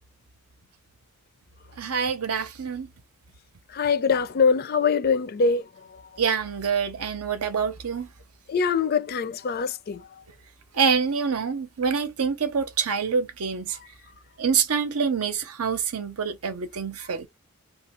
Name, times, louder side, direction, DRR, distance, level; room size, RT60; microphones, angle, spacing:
voice 1, 1.8-2.9 6.2-8.1 10.7-13.8 14.4-17.3, right 6 dB, 80° right, 0.7 m, -26 dB
voice 2, 3.7-5.6 8.5-10.0, left 5 dB, 45° left, 0.4 m, -23 dB
3.0 x 2.5 x 3.0 m
head